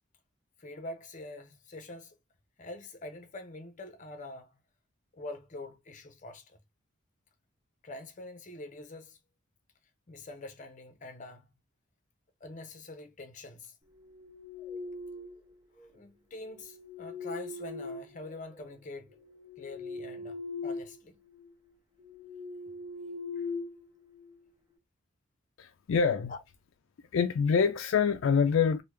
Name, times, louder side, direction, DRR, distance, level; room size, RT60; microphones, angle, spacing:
voice 1, 0.6-2.2 2.6-4.5 5.1-6.6 7.8-9.2 10.1-11.5 12.4-13.7 15.9-19.2 19.6-21.2 23.4-23.5 26.3-26.4, left 2 dB, 35° left, 0.7 m, -45 dB
sound 1, 14.0-15.5 16.5-18.6 19.1-21.0 21.3-21.5 22.0-24.4, left 3 dB, 20° right, 1.2 m, -41 dB
voice 2, 25.6-26.3 27.1-28.8, left 6 dB, 65° left, 0.3 m, -25 dB
3.2 x 2.2 x 3.2 m
head